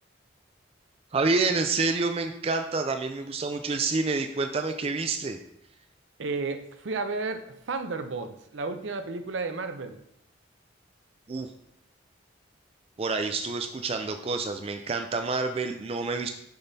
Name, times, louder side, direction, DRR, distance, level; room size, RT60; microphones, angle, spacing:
voice 1, 1.1-5.4 11.3-11.5 13.0-16.3, right 3 dB, 30° right, 6 dB, 0.4 m, -28 dB
voice 2, 6.2-10.0, right 3 dB, 75° right, 9 dB, 0.6 m, -32 dB
6.6 x 6.2 x 2.7 m, 0.75 s
head